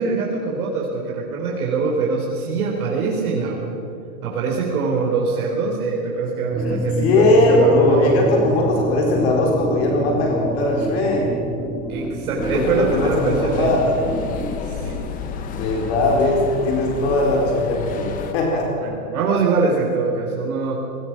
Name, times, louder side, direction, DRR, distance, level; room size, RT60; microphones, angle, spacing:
voice 1, 0.0-3.8 4.2-8.2 11.9-13.7 14.6-15.0 18.8-20.7, right 4 dB, 75° right, -2 dB, 4.7 m, -23 dB
sound 1, 6.5-14.6, right 2 dB, ahead, 0.7 m, -28 dB
voice 2, 6.6-11.3 12.5-13.8 15.4-18.9, left 2 dB, 45° left, -1 dB, 4.2 m, -19 dB
sound 2, 12.4-18.3, left 6 dB, 20° left, 1.3 m, -31 dB
27.0 x 20.0 x 6.2 m, 3.0 s
supercardioid pair, 170°, 44 cm